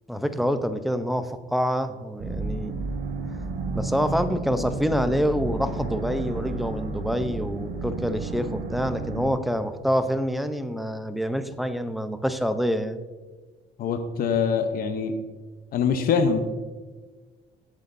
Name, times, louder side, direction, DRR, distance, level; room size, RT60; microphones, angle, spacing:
voice 1, 0.1-2.8 3.7-13.0, equal, ahead, 9 dB, 0.7 m, -26 dB
sound 1, 2.2-9.3, right 3 dB, 80° right, 1.5 m, -32 dB
voice 2, 13.8-15.2 15.7-16.4, left 6 dB, 60° left, 6 dB, 0.9 m, -23 dB
16.5 x 8.3 x 2.7 m, 1.3 s
cardioid pair, 110°, 17 cm